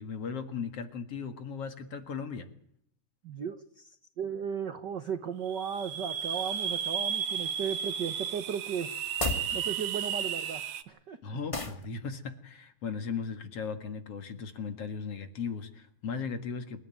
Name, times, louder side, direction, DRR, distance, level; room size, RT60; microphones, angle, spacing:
voice 1, 0.0-2.5 11.2-16.8, left 5 dB, 55° left, 8 dB, 2.6 m, -37 dB
voice 2, 3.2-8.9 9.5-11.2, right 7 dB, 65° right, 10 dB, 1.1 m, -36 dB
sound 1, 5.5-10.8, right 8 dB, 85° right, 2.9 m, -33 dB
sound 2, 9.1-9.5 11.5-11.8, left 3 dB, 15° left, 1.5 m, -32 dB
27.5 x 14.0 x 9.2 m, 0.67 s
omnidirectional pair, 3.6 m